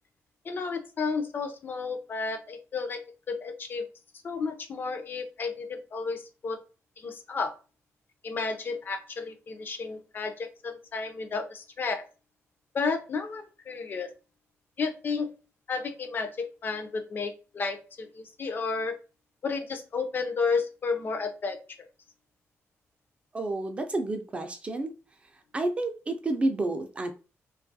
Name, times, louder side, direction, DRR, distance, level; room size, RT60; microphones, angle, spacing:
voice 1, 0.4-3.0 3.3-3.9 4.2-6.6 7.0-7.5 8.2-12.0 12.7-14.1 14.8-15.3 15.7-18.9 19.4-21.6, left 4 dB, 40° left, 7 dB, 0.4 m, -32 dB
voice 2, 23.3-24.9 25.5-27.1, right 2 dB, 25° right, 7 dB, 0.3 m, -30 dB
2.8 x 2.3 x 2.6 m, 0.33 s
wide cardioid pair, 150°, 5 cm